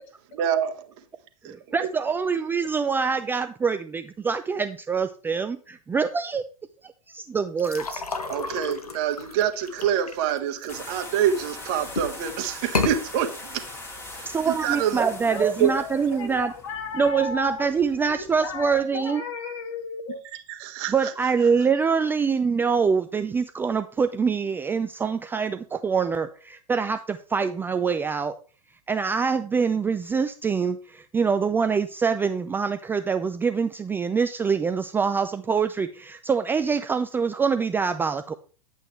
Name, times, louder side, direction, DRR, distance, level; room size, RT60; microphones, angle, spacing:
voice 1, 0.3-1.0 1.4-1.6 8.3-13.7 14.1-15.0 15.6-15.7 20.3-21.1, right 9 dB, 45° right, 6 dB, 1.4 m, -26 dB
voice 2, 1.4-6.4 6.8-8.0 14.3-16.5 16.9-19.2 20.9-28.4 28.9-38.3, right 5 dB, 10° right, 9 dB, 0.5 m, -25 dB
sound 1, 7.6-11.4 11.9-12.3 12.6-13.0, left 4 dB, 85° left, 1.3 m, -31 dB
sound 2, 10.7-18.8, left 2 dB, 15° left, 3.1 m, -42 dB
voice 3, 15.2-17.7 18.0-20.2, left 5 dB, 55° left, 3 dB, 2.8 m, -35 dB
11.0 x 8.2 x 3.2 m, 0.36 s
figure-of-eight pair, 105°, 19 cm